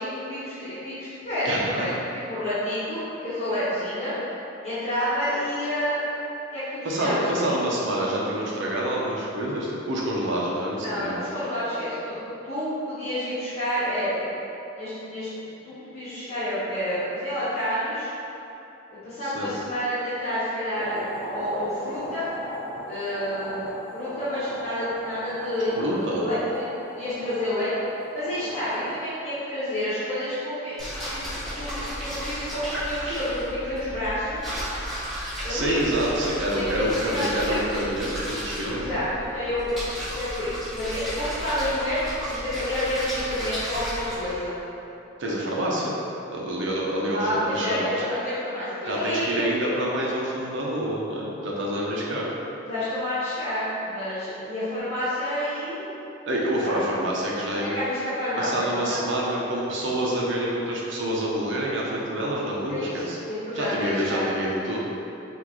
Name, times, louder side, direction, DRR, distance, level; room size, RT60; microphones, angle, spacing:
voice 1, 0.0-1.9 2.3-4.1 4.6-6.0 6.5-7.5 10.8-14.3 14.8-15.3 15.6-18.1 19.0-21.0 21.3-22.3 22.9-26.6 26.9-27.7 28.1-30.8 31.1-31.2 31.5-34.5 35.4-35.8 36.5-37.6 38.7-39.8 40.1-44.5 47.1-49.4 51.8-52.0 52.6-55.9 56.6-56.7 57.6-59.0 62.7-63.0 63.3-64.2, left 1 dB, 35° left, -14 dB, 1.3 m, -29 dB
voice 2, 1.4-1.9 6.8-11.2 19.2-19.5 25.8-26.2 35.5-39.0 45.2-46.0 46.3-48.0 48.9-52.3 56.3-57.8 58.4-63.2 63.5-64.9, right 1 dB, 65° right, -4 dB, 0.7 m, -27 dB
sound 1, 20.8-29.1, equal, 20° right, 1.2 m, -37 dB
sound 2, 30.8-44.3, equal, ahead, 1.5 m, -33 dB
5.9 x 2.6 x 3.1 m, 3.0 s
head